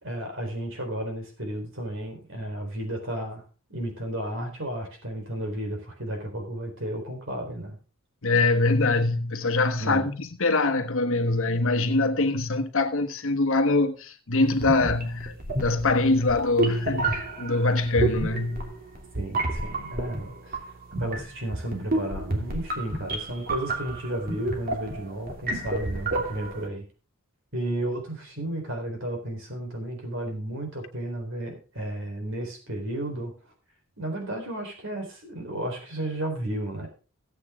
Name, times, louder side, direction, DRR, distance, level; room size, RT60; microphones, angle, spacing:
voice 1, 0.0-3.4 3.7-7.8 9.8-10.1 19.1-20.6 21.0-26.8 27.5-33.3 34.0-36.9, right 1 dB, 60° right, 4.0 m, -33 dB
voice 2, 8.2-15.3 15.6-18.7, left 2 dB, 65° left, 1.3 m, -23 dB
sound 1, 14.5-26.7, right 2 dB, 40° right, 2.8 m, -31 dB
16.5 x 8.4 x 3.7 m
head